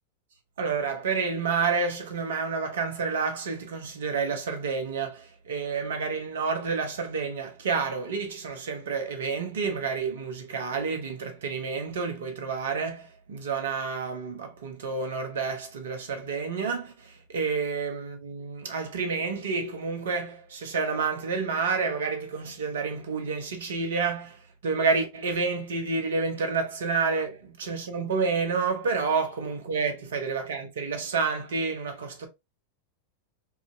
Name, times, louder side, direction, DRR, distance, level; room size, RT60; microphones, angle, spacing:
voice 1, 0.6-32.3, right 4 dB, 60° right, 0.7 m, -29 dB
2.8 x 2.5 x 2.5 m
figure-of-eight pair, 90°, 0 cm